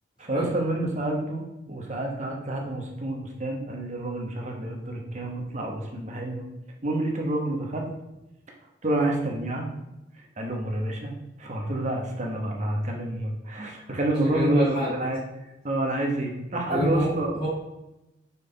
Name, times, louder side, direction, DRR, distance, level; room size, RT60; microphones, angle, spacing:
voice 1, 0.2-6.5 6.8-7.9 8.8-9.6 10.4-11.1 11.4-15.2 15.6-17.4, right 2 dB, 40° right, 1 dB, 1.1 m, -28 dB
voice 2, 14.2-14.9 16.7-17.5, left 1 dB, 25° left, -12 dB, 2.1 m, -27 dB
5.5 x 4.6 x 4.0 m, 0.97 s
head